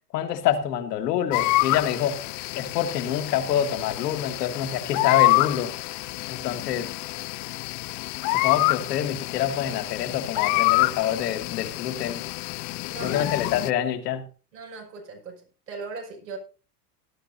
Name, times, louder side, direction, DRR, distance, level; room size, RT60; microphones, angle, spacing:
voice 1, 0.1-2.2 2.6-5.9 6.3-6.9 8.3-12.2 13.0-14.2, left 10 dB, 75° left, 1.9 m, -26 dB
sound 1, 1.3-13.7, left 21 dB, 40° left, 0.5 m, -27 dB
voice 2, 12.9-13.3 14.5-16.4, right 4 dB, 90° right, 5.8 m, -39 dB
18.0 x 12.0 x 2.7 m
hypercardioid pair, 95°, 49 cm